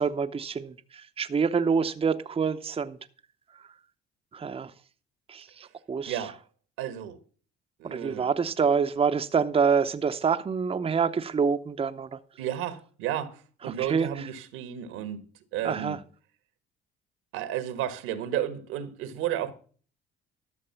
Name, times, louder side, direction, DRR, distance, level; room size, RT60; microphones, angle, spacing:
voice 1, 0.0-3.0 4.3-4.7 5.3-6.3 7.8-12.2 13.6-14.3 15.6-16.0, right 6 dB, 25° right, 0.7 m, -27 dB
voice 2, 6.0-6.4 6.8-7.2 7.8-8.3 12.4-15.2 15.5-16.0 17.3-19.5, right 11 dB, 85° right, 1.4 m, -32 dB
12.5 x 6.5 x 5.7 m
supercardioid pair, 80°, 21 cm